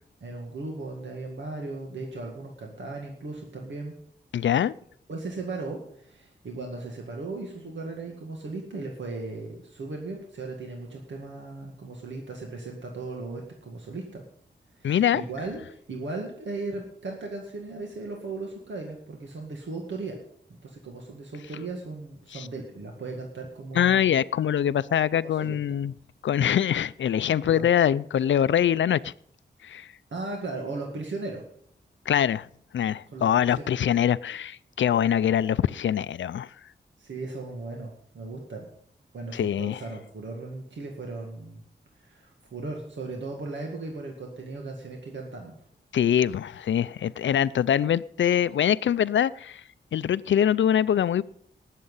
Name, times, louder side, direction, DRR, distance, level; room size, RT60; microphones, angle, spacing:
voice 1, 0.2-3.9 5.1-14.2 14.8-20.2 20.5-24.2 25.2-25.8 27.4-27.6 30.1-31.4 33.1-33.8 37.0-38.6 39.1-41.6 42.0-45.5, right 3 dB, 80° right, 2.1 m, -37 dB
voice 2, 4.3-4.7 14.8-15.2 22.3-22.5 23.7-25.9 26.2-29.1 29.6-29.9 32.1-32.5 32.7-36.5 39.3-39.8 45.9-49.6 49.9-51.2, left 9 dB, 90° left, 0.4 m, -23 dB
19.5 x 7.6 x 5.5 m
wide cardioid pair, 140°, 19 cm